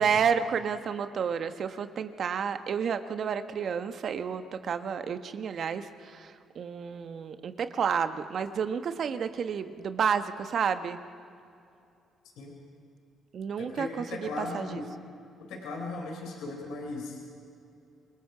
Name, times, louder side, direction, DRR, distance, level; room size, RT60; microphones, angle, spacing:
voice 1, 0.0-11.0 13.3-14.8, right 7 dB, 60° right, 9 dB, 1.3 m, -30 dB
voice 2, 13.6-14.8 15.5-17.4, left 3 dB, 80° left, 0 dB, 4.0 m, -37 dB
27.5 x 19.5 x 5.1 m, 2.6 s
supercardioid pair, 70°, 0 cm